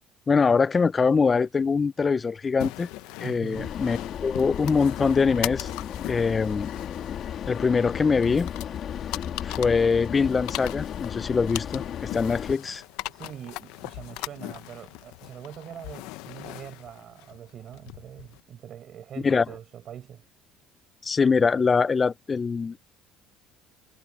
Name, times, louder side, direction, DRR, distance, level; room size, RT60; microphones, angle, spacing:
voice 1, 0.3-2.9 3.2-5.7 6.1-6.7 7.5-8.5 9.4-11.8 12.1-12.8 19.2-19.4 21.0-22.8, left 5 dB, 20° left, 0.3 m, -23 dB
sound 1, 2.6-18.4, left 19 dB, 90° left, 0.7 m, -40 dB
voice 2, 3.2-3.7 13.1-20.2, right 10 dB, 45° right, 6.0 m, -43 dB
sound 2, 3.5-12.6, left 9 dB, 45° left, 1.5 m, -34 dB
cardioid pair, 140°, 0 cm